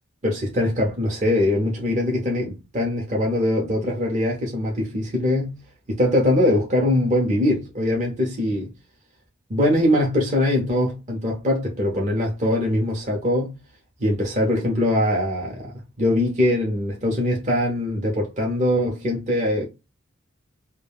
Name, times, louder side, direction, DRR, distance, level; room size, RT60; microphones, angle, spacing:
voice 1, 0.2-5.6 5.9-8.7 9.5-13.6 14.0-19.7, left 1 dB, 35° right, 0.6 m, -22 dB
2.2 x 2.1 x 3.3 m
head